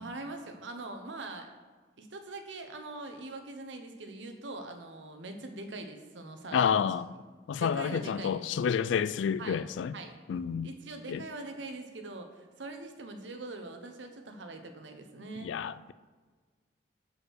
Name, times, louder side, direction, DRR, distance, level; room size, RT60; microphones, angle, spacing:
voice 1, 0.0-1.5 2.0-6.9 7.6-8.4 9.4-9.6 9.9-10.2 10.6-15.6, right 2 dB, 80° right, 0.9 m, -42 dB
voice 2, 6.5-7.1 7.5-9.9 10.3-10.7 11.1-11.2 15.4-15.9, left 7 dB, 80° left, 0.3 m, -29 dB
6.3 x 4.8 x 6.3 m
head